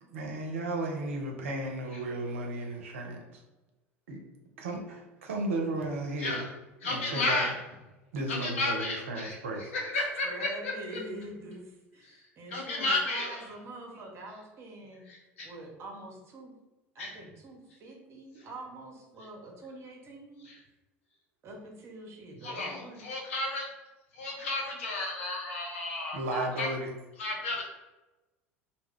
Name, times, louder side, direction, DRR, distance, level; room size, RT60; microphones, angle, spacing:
voice 1, 0.1-3.4 4.1-4.2 4.6-6.4 6.8-7.4 8.1-9.7 26.1-26.9, right 2 dB, 75° right, 1 dB, 0.5 m, -34 dB
voice 2, 6.8-7.5 8.3-9.4 9.7-11.0 12.0-12.2 12.5-13.4 15.1-15.5 17.0-17.2 20.4-20.6 22.4-23.7 24.1-26.7 27.2-27.6, left 2 dB, 70° left, -2 dB, 0.7 m, -33 dB
voice 3, 9.9-15.0 15.4-16.6 16.9-20.5 21.4-23.0, right 1 dB, 40° right, 0 dB, 0.7 m, -45 dB
2.2 x 2.0 x 3.6 m, 1.1 s
figure-of-eight pair, 70°, 7 cm